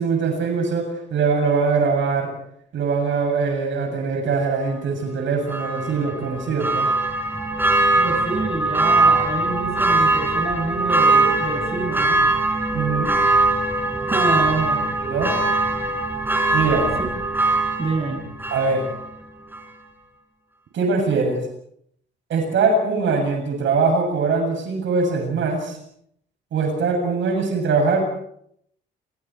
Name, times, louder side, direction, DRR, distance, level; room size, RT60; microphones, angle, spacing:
voice 1, 0.0-2.3 2.7-6.9 12.7-13.1 15.0-15.3 16.5-16.9 18.5-18.9 20.7-21.4 22.3-25.8 26.5-28.0, right 4 dB, 70° right, 3 dB, 7.5 m, -22 dB
Church bell, 5.5-19.1 19.5-19.6, right 2 dB, 10° right, 5.3 m, -21 dB
voice 2, 8.0-12.3 14.1-14.8 17.0-17.1 17.8-18.2, right 3 dB, 30° right, 3 dB, 6.9 m, -27 dB
28.5 x 22.0 x 4.6 m, 0.69 s
cardioid pair, 90°, 20 cm